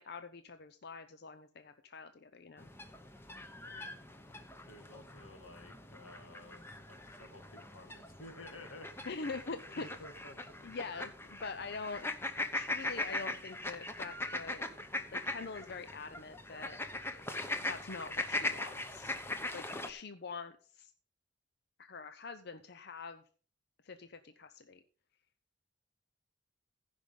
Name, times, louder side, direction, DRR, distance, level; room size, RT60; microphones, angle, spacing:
voice 1, 0.0-2.7 9.1-9.9 10.6-12.2 12.5-14.6 15.1-16.8 17.7-19.2 19.5-20.9 21.8-23.2 23.8-24.8, left 4 dB, 55° left, 9 dB, 0.6 m, -44 dB
sound 1, 2.6-19.9, left 2 dB, 10° left, 0.8 m, -41 dB
voice 2, 3.6-4.1 4.7-8.9 9.7-10.5, left 1 dB, 90° left, 6 dB, 2.0 m, -53 dB
15.5 x 5.4 x 5.3 m, 0.41 s
head